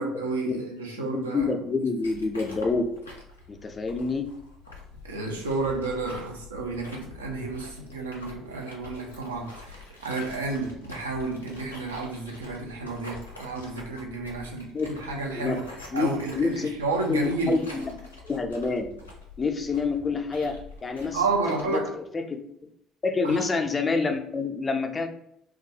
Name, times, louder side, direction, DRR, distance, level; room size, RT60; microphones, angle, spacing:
voice 1, 0.0-1.5 5.0-15.7 15.9-17.6 21.1-22.0 23.2-23.5, right 3 dB, 80° right, 0.4 m, -31 dB
voice 2, 1.0-2.9 3.5-4.3 14.7-15.6 15.9-16.7 17.1-18.9 19.4-22.4 23.0-25.1, left 4 dB, 30° left, 0.4 m, -28 dB
sound 1, 2.0-21.7, left 2 dB, 90° left, 0.4 m, -45 dB
2.3 x 2.2 x 2.7 m
figure-of-eight pair, 55°, 0 cm